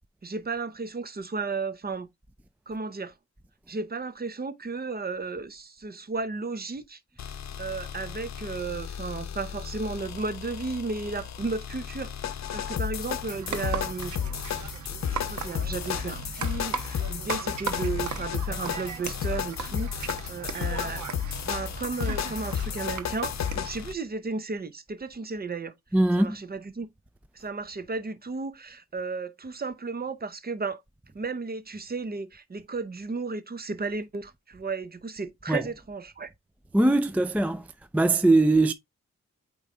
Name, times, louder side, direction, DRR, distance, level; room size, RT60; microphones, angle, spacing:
voice 1, 0.2-2.1 2.7-3.1 3.7-7.0 7.6-12.1 12.5-14.1 15.1-21.0 21.3-25.7 26.2-26.9 27.3-30.8 31.1-36.3, right 4 dB, 35° right, 0.8 m, -34 dB
sound 1, 7.2-23.9, left 8 dB, 70° left, 0.7 m, -33 dB
sound 2, 13.3-23.7, right 6 dB, 85° right, 1.1 m, -37 dB
voice 2, 25.9-26.4 35.5-35.6 36.7-37.7 37.9-38.7, right 2 dB, 5° right, 0.3 m, -21 dB
8.7 x 3.1 x 3.7 m
wide cardioid pair, 135°, 29 cm